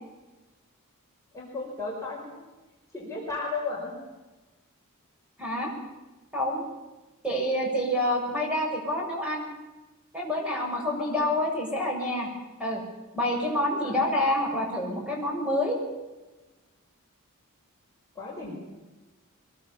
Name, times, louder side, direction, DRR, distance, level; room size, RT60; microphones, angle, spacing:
voice 1, 1.3-2.3 2.9-3.9 10.9-11.3 13.8-14.0 18.2-18.6, left 3 dB, 15° left, -3 dB, 5.2 m, -34 dB
voice 2, 5.4-5.7 6.3-6.6 7.2-9.4 10.1-12.3 12.6-12.8 13.1-15.8, left 1 dB, 5° right, -2 dB, 6.5 m, -27 dB
23.5 x 21.5 x 7.3 m, 1.2 s
head